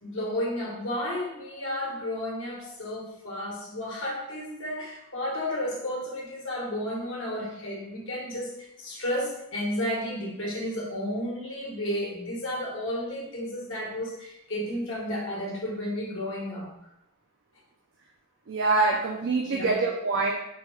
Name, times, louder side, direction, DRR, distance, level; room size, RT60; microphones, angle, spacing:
voice 1, 0.0-16.7 19.4-19.8, left 1 dB, 65° left, -3 dB, 1.0 m, -32 dB
voice 2, 18.5-20.3, right 3 dB, 60° right, 0 dB, 0.4 m, -25 dB
3.9 x 2.2 x 3.1 m, 0.81 s
head